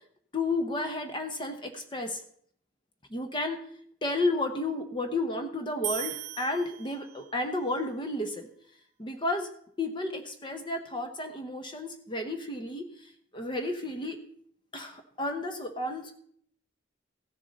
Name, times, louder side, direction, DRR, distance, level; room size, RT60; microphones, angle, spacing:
voice 1, 0.3-2.2 3.1-3.6 4.0-8.5 9.0-9.5 9.8-12.9 13.3-14.2 14.7-16.1, left 2 dB, 25° left, 6 dB, 1.0 m, -32 dB
sound 1, 5.8-7.5, right 11 dB, 40° right, 0.7 m, -38 dB
15.5 x 7.1 x 4.1 m, 0.63 s
head